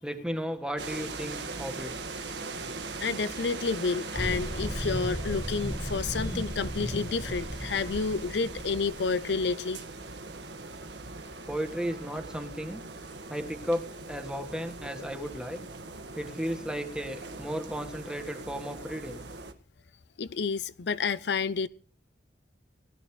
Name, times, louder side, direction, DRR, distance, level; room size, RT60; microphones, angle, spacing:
voice 1, 0.0-1.9 11.5-12.8 13.3-15.6 16.1-19.3, equal, 5° right, 1.5 m, -34 dB
sound 1, 0.8-19.5, right 3 dB, 75° right, 1.7 m, -41 dB
voice 2, 3.0-9.8 20.2-21.7, left 4 dB, 70° left, 0.6 m, -30 dB
sound 2, 4.1-9.3, equal, 15° left, 1.8 m, -35 dB
19.0 x 12.5 x 3.2 m
head